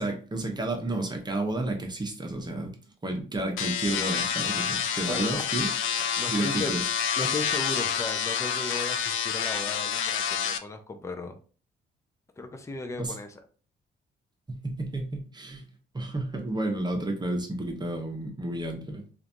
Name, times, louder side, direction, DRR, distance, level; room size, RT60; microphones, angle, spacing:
voice 1, 0.0-2.7 3.0-5.7 6.3-6.8 13.0-13.1 14.5-15.6 15.9-19.0, right 2 dB, 20° right, 3 dB, 0.8 m, -31 dB
sound 1, 3.6-10.6, left 7 dB, 80° left, 0.4 m, -28 dB
voice 2, 5.0-5.5 6.2-6.7 7.2-11.3 12.4-13.4, left 3 dB, 15° left, 5 dB, 0.5 m, -35 dB
3.1 x 2.5 x 2.6 m, 0.39 s
cardioid pair, 90°, 20 cm